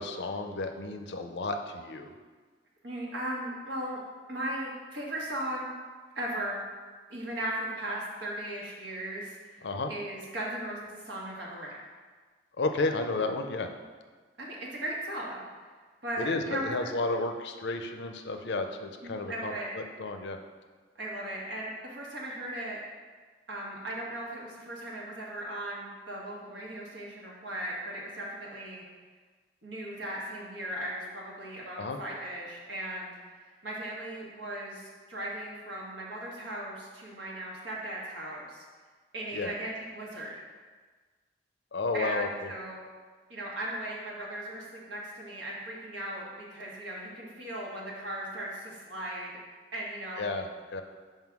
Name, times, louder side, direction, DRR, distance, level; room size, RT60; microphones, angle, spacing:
voice 1, 0.0-2.1 9.6-9.9 12.6-13.7 16.2-20.4 31.8-32.0 39.3-39.5 41.7-42.5 50.2-50.8, left 3 dB, 70° left, 6 dB, 0.6 m, -32 dB
voice 2, 2.8-4.0 4.3-5.7 6.1-6.6 7.1-11.8 14.4-15.7 16.0-16.9 19.0-19.7 20.9-22.8 23.5-28.8 29.6-38.6 39.1-40.4 41.9-42.8 43.3-49.3 49.7-50.3, right 1 dB, 90° right, -4 dB, 1.6 m, -37 dB
5.4 x 3.8 x 6.0 m, 1.4 s
head